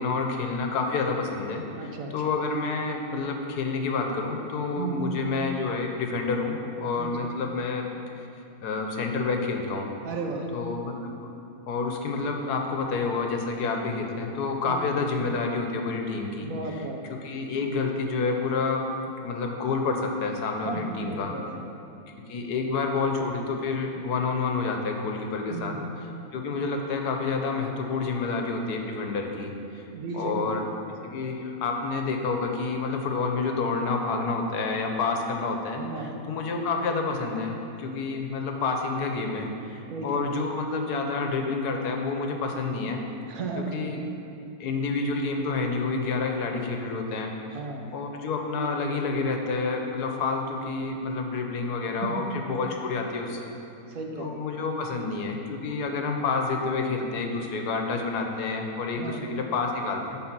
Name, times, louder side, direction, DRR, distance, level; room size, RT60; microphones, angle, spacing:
voice 1, 0.0-7.8 8.6-9.9 10.5-10.9 11.7-16.5 17.2-18.9 19.2-21.3 22.3-25.7 26.3-29.8 30.1-30.6 30.9-43.0 43.7-44.1 44.6-47.3 47.9-53.5 54.2-60.2, left 4 dB, 90° left, 3 dB, 1.4 m, -29 dB
voice 2, 1.8-2.1 4.8-5.0 7.0-7.3 10.0-10.5 14.6-14.8 16.4-17.0 20.6-21.6 25.5-25.9 29.9-30.7 35.8-36.2 39.9-40.2 43.3-43.9 47.5-47.9 52.0-52.3 53.9-54.4 59.0-59.2, right 4 dB, 65° right, 2 dB, 1.2 m, -34 dB
9.7 x 4.1 x 5.9 m, 2.7 s
omnidirectional pair, 1.7 m